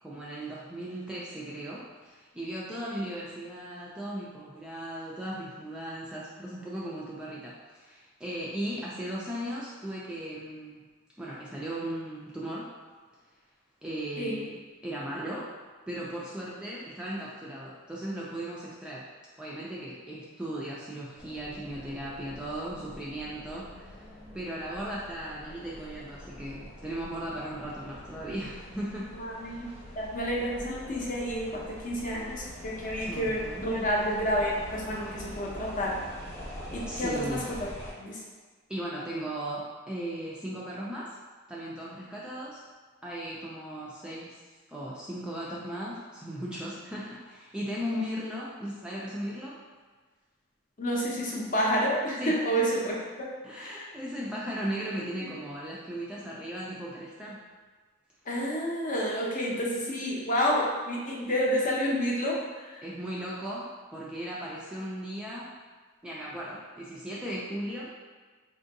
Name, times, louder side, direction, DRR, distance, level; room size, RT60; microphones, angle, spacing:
voice 1, 0.0-10.8 11.2-12.7 13.8-15.5 15.9-19.1 19.4-24.1 24.3-29.1 29.4-29.6 33.0-33.9 36.9-37.5 38.7-41.2 41.5-42.6 43.0-44.4 44.7-49.6 52.2-52.3 53.4-57.4 62.8-65.5 66.0-67.9, right 1 dB, 5° right, -7 dB, 0.3 m, -37 dB
sound 1, 21.2-37.9, equal, 10° left, 0.9 m, -44 dB
voice 2, 29.1-29.7 30.0-36.0 36.7-37.4 38.0-38.2 50.8-53.3 53.5-53.9 55.2-55.3 58.3-62.8, equal, 40° left, -3 dB, 0.6 m, -29 dB
3.7 x 2.6 x 2.6 m, 1.4 s
head